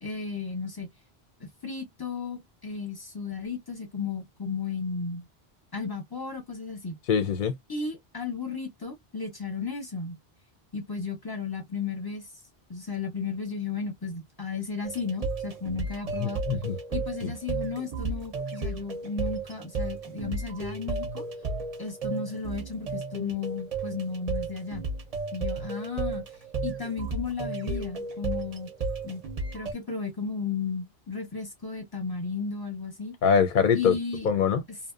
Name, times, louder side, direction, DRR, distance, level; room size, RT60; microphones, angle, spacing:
voice 1, 0.0-0.9 1.4-5.2 5.7-7.0 7.7-10.2 10.7-12.3 12.7-16.4 16.9-21.2 21.8-24.8 25.3-26.2 26.6-28.7 29.0-29.2 29.5-33.1 33.7-34.3 34.7-34.9, left 5 dB, 25° left, 0.7 m, -34 dB
voice 2, 7.1-7.5 16.2-16.7 33.2-33.9 34.2-34.6, left 6 dB, 60° left, 0.7 m, -23 dB
sound 1, 14.8-29.7, right 3 dB, 45° right, 0.6 m, -33 dB
2.7 x 2.0 x 2.4 m
omnidirectional pair, 1.0 m